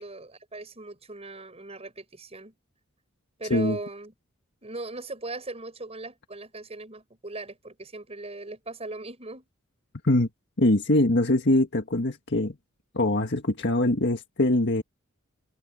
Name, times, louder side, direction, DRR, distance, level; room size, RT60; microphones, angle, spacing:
voice 1, 0.0-2.5 3.4-4.1 4.6-9.5, right 2 dB, 30° right, 6.6 m, -39 dB
voice 2, 10.6-12.5 12.9-14.8, left 1 dB, 60° left, 1.7 m, -23 dB
head